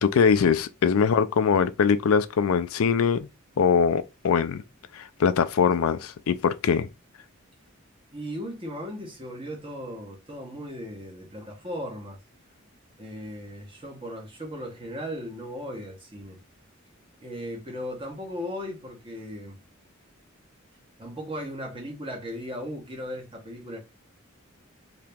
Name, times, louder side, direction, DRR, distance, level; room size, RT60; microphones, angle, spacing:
voice 1, 0.0-3.3 3.6-4.6 4.9-6.9, left 6 dB, 85° left, 0.4 m, -22 dB
voice 2, 8.1-12.2 13.0-16.4 17.2-19.6 21.0-23.8, equal, 25° right, 1.2 m, -37 dB
2.9 x 2.8 x 3.5 m
head